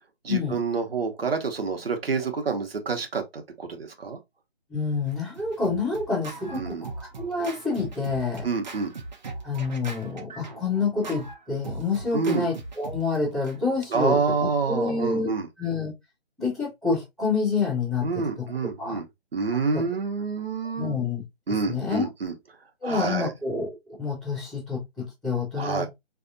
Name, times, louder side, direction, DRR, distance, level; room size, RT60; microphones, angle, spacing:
voice 1, 0.2-4.2 6.5-6.8 8.4-8.9 12.1-12.5 13.9-15.5 18.0-19.1 19.3-21.0 21.5-22.3 22.8-23.3 25.6-25.9, right 4 dB, 60° right, 1.2 m, -28 dB
voice 2, 4.7-8.5 9.4-15.3 15.6-15.9 16.4-18.4 18.8-19.0 19.5-19.8 20.8-21.2 21.5-22.1 22.8-23.7 24.0-25.9, left 4 dB, ahead, 0.7 m, -28 dB
Scratching (performance technique), 5.1-13.5, right 3 dB, 45° right, 0.9 m, -40 dB
5.1 x 3.3 x 2.6 m
hypercardioid pair, 160°, 32 cm